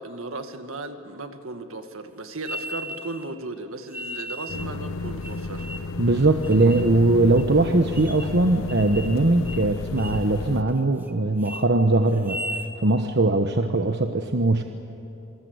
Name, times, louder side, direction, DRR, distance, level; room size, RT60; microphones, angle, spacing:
voice 1, 0.0-5.7, right 2 dB, 70° right, 7 dB, 1.9 m, -36 dB
sound 1, 2.4-3.3 3.9-4.7 5.2-6.0 6.4-6.9 7.4-7.5 7.9-8.4 8.7-9.2 9.4-9.7 10.0-10.3 10.7-11.1 11.4-11.6 12.1-12.7, equal, 10° right, 1.6 m, -36 dB
sound 2, 4.5-10.6, left 3 dB, 85° left, 1.0 m, -32 dB
voice 2, 6.0-14.6, right 2 dB, 55° right, 6 dB, 1.1 m, -21 dB
27.5 x 24.5 x 8.2 m, 3.0 s
head